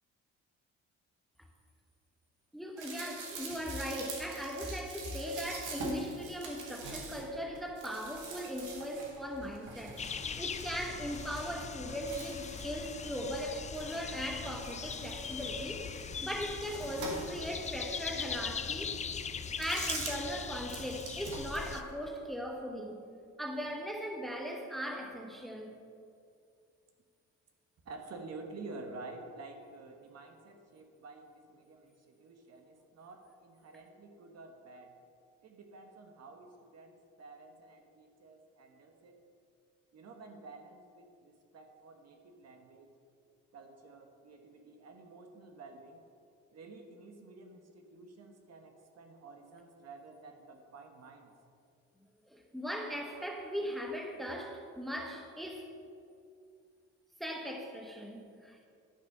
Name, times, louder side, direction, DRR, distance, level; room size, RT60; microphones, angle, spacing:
voice 1, 2.5-10.0 10.4-15.9 16.2-18.9 19.6-23.0 23.4-25.8 52.3-55.8 57.2-58.7, equal, ahead, 1.0 m, -39 dB
sound 1, 2.8-14.2 14.5-17.7 18.2-18.3 19.5-20.4 20.6-21.9, right 3 dB, 90° right, 1.6 m, -45 dB
sound 2, 10.0-21.8, left 6 dB, 25° left, 0.4 m, -40 dB
voice 2, 27.8-35.0 35.4-39.2 39.9-42.9 43.5-46.0 46.5-51.3, right 3 dB, 55° right, 1.2 m, -50 dB
11.5 x 4.1 x 5.5 m
cardioid pair, 90°, 30 cm